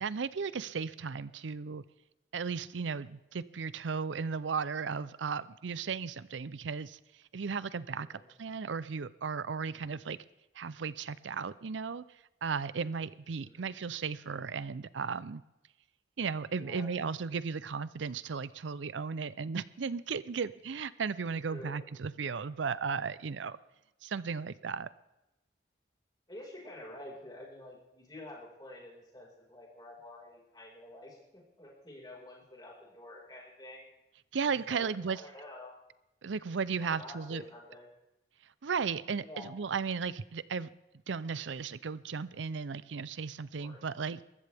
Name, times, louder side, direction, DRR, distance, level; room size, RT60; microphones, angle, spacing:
voice 1, 0.0-1.8 2.3-7.0 7.3-10.2 10.5-12.0 12.4-15.4 16.2-23.6 24.0-24.9 34.3-35.2 36.2-37.4 38.6-40.7 41.1-44.2, right 5 dB, 85° right, 17 dB, 0.5 m, -35 dB
voice 2, 26.3-33.9 34.5-35.7 36.8-37.9 39.2-39.5 43.6-43.8, left 1 dB, 20° left, -2 dB, 5.0 m, -49 dB
21.5 x 14.5 x 3.5 m, 0.93 s
head